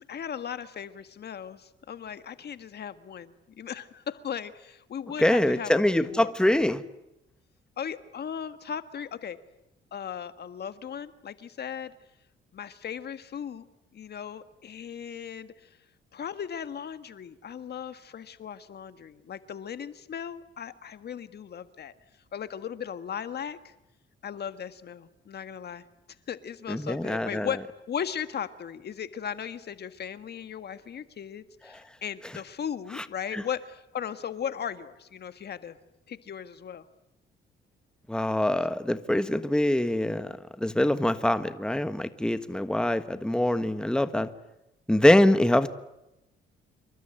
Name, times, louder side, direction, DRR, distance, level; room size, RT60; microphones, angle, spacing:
voice 1, 0.0-6.3 7.8-9.4 9.9-11.9 12.5-13.6 13.9-15.7 16.1-21.9 22.3-23.7 24.2-25.8 26.3-27.6 27.9-35.8 36.1-36.8, left 8 dB, 55° left, 11 dB, 1.6 m, -37 dB
voice 2, 5.2-6.8 26.7-27.5 32.9-33.0 33.3-33.4 38.1-44.3 44.9-45.7, left 1 dB, 5° left, 11 dB, 1.4 m, -24 dB
27.5 x 23.5 x 8.9 m, 0.89 s
cardioid pair, 90°, 20 cm